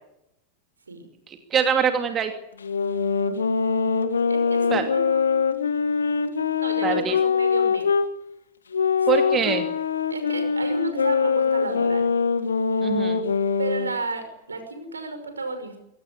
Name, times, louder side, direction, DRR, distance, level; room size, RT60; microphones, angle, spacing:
voice 1, 1.3-2.3 4.7-4.9 6.8-7.2 9.1-9.6 12.8-13.2, right 7 dB, 25° right, 6 dB, 2.6 m, -24 dB
sound 1, 2.6-8.1 8.7-13.9, left 5 dB, 70° left, 2.0 m, -23 dB
voice 2, 3.2-5.3 6.6-7.9 9.0-9.6 10.1-12.1 13.6-15.8, right 3 dB, 75° right, 8 dB, 5.7 m, -33 dB
23.5 x 17.5 x 8.8 m, 0.82 s
figure-of-eight pair, 90°, 0 cm